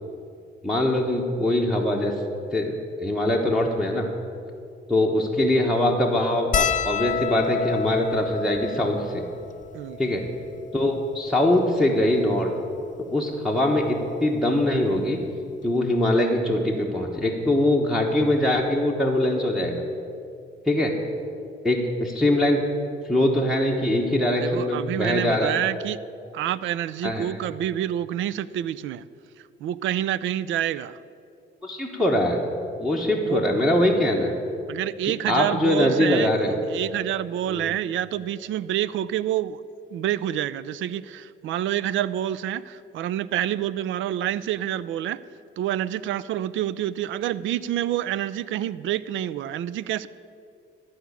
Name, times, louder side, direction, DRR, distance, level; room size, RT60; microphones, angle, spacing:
voice 1, 0.6-2.1 2.5-2.7 3.0-4.1 4.9-9.2 10.0-10.2 10.7-12.5 13.1-15.2 15.6-19.8 20.6-20.9 21.6-22.6 23.1-25.6 27.0-27.4 31.6-32.4 32.8-34.3 35.0-36.6 37.5-37.7, left 1 dB, ahead, -3 dB, 1.1 m, -22 dB
sound 1, 6.5-11.1 11.9-12.0 12.2-12.4 13.6-13.9 15.3-15.4 15.6-15.8, left 7 dB, 40° left, 0.6 m, -29 dB
voice 2, 24.4-26.0 26.3-29.0 29.6-31.0 33.1-33.7 34.7-36.3 36.7-39.6 39.9-45.2 45.6-50.1, right 11 dB, 75° right, 18 dB, 0.4 m, -27 dB
13.0 x 5.1 x 8.2 m, 2.4 s
cardioid pair, 90°, 20 cm